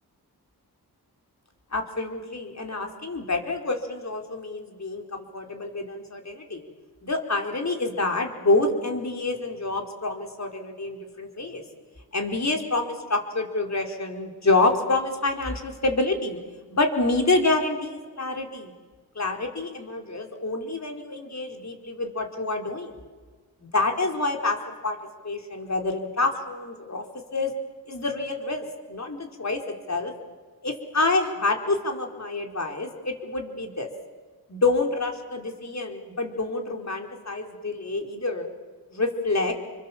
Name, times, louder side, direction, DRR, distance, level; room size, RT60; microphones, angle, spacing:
voice 1, 1.7-6.7 7.0-11.6 12.1-16.4 16.7-18.7 19.1-22.9 23.6-24.6 24.8-25.0 25.2-27.0 27.3-27.5 27.9-29.6 29.9-30.1 30.6-33.9 34.5-38.5 38.9-39.5, left 2 dB, 40° left, 3 dB, 4.6 m, -27 dB
28.5 x 24.0 x 7.5 m, 1.4 s
cardioid pair, 55°, 40 cm